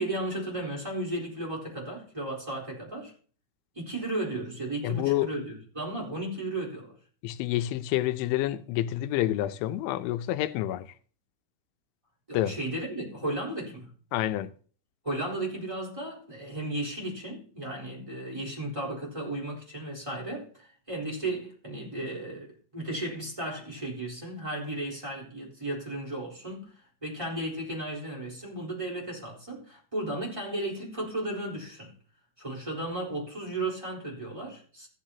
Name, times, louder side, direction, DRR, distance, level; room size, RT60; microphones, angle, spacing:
voice 1, 0.0-3.1 3.7-6.9 12.3-13.9 15.0-26.7 27.0-31.9 32.4-34.9, right 1 dB, 10° right, 3.3 m, -34 dB
voice 2, 4.8-5.3 7.2-10.9 12.3-12.6 14.1-14.5, left 14 dB, 90° left, 3.1 m, -28 dB
15.0 x 10.5 x 2.9 m
omnidirectional pair, 5.3 m